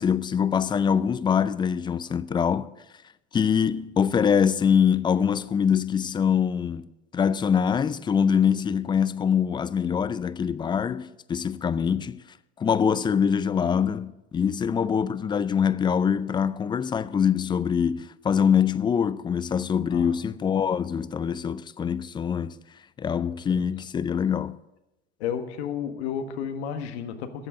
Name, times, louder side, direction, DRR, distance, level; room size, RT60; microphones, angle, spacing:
voice 1, 0.0-2.8 3.3-6.9 7.1-12.2 12.6-22.6 23.0-24.6, left 7 dB, 15° left, 0.3 m, -24 dB
voice 2, 23.3-23.7 25.2-27.5, left 8 dB, 75° left, 1.5 m, -32 dB
13.5 x 7.9 x 6.1 m
hypercardioid pair, 100°, 33 cm